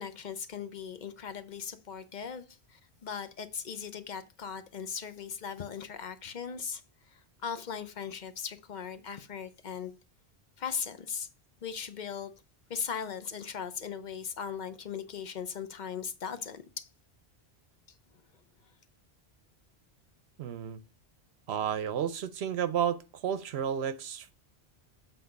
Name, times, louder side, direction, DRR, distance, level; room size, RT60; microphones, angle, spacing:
voice 1, 0.0-6.8 7.1-9.9 10.6-11.3 11.6-12.3 12.7-16.9, left 7 dB, 50° left, 0.8 m, -38 dB
voice 2, 20.4-20.8 21.5-24.3, right 8 dB, 75° right, 0.8 m, -32 dB
8.1 x 3.8 x 5.2 m
omnidirectional pair, 1.1 m